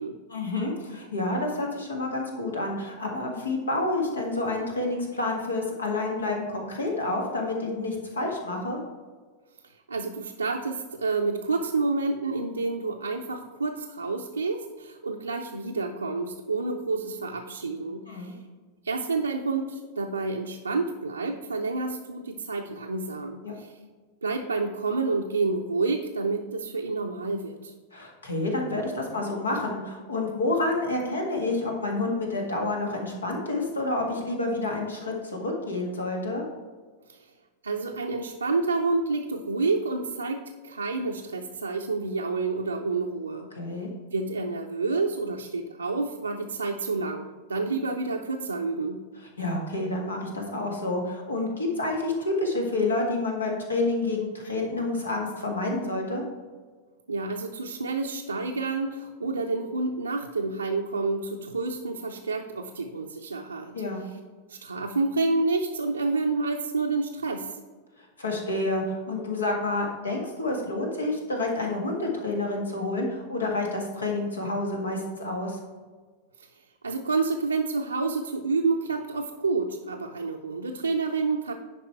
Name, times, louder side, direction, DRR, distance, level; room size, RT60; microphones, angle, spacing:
voice 1, 0.3-8.8 18.1-18.3 23.4-23.6 27.9-36.5 43.6-43.9 49.4-56.2 63.7-64.1 68.0-75.6, left 2 dB, 75° left, 1 dB, 1.8 m, -29 dB
voice 2, 9.6-18.4 18.8-23.8 24.2-27.7 37.1-37.3 37.6-43.5 44.1-49.0 57.1-63.8 64.0-64.2 64.5-67.6 76.4-76.5 76.8-81.5, right 3 dB, 80° right, 1 dB, 0.6 m, -29 dB
10.0 x 5.1 x 4.5 m, 1.4 s
figure-of-eight pair, 90°, 0 cm